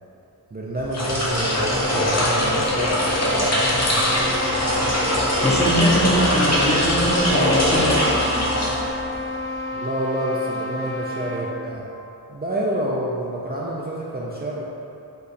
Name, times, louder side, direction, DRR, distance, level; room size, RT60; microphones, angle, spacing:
voice 1, 0.5-3.7 9.7-11.8 12.3-14.6, right 1 dB, 25° right, -5 dB, 0.4 m, -28 dB
sound 1, 0.8-9.2, left 1 dB, 40° left, 0.9 m, -21 dB
sound 2, 1.3-11.6, left 2 dB, 70° left, 1.1 m, -31 dB
voice 2, 5.1-8.3, equal, 15° left, -4 dB, 0.7 m, -22 dB
5.3 x 2.3 x 4.1 m, 2.8 s
wide cardioid pair, 90°, 39 cm